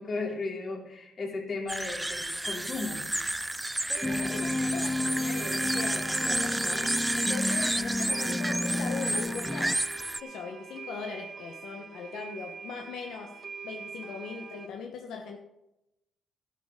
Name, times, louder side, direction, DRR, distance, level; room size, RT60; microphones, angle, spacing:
voice 1, 0.0-3.1, left 3 dB, 45° left, 0 dB, 3.3 m, -35 dB
sound 1, 1.7-10.2, right 1 dB, 10° right, 0.4 m, -31 dB
sound 2, 3.0-3.1 3.5-3.6 4.0-14.7, right 6 dB, 50° right, 1.6 m, -44 dB
voice 2, 3.9-9.8 10.2-13.3 13.6-15.4, left 5 dB, 80° left, 2 dB, 1.2 m, -40 dB
sound 3, 4.0-9.8, left 2 dB, 15° left, 0.7 m, -32 dB
13.0 x 11.0 x 3.8 m, 0.88 s
cardioid pair, 90°, 0 cm